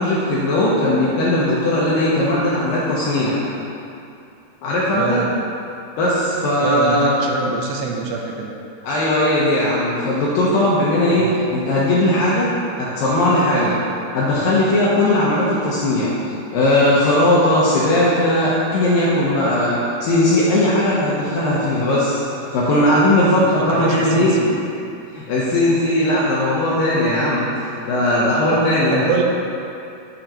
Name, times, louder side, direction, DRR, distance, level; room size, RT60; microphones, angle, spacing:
voice 1, 0.0-3.4 4.6-5.2 6.0-7.1 8.8-13.8 14.1-16.1 16.5-24.3 25.1-29.1, left 1 dB, 75° left, -7 dB, 2.1 m, -18 dB
voice 2, 4.9-5.3 6.6-8.5 11.2-11.3 23.7-24.6 28.9-29.2, right 5 dB, 85° right, 0 dB, 2.8 m, -25 dB
10.0 x 6.5 x 2.9 m, 2.6 s
omnidirectional pair, 5.0 m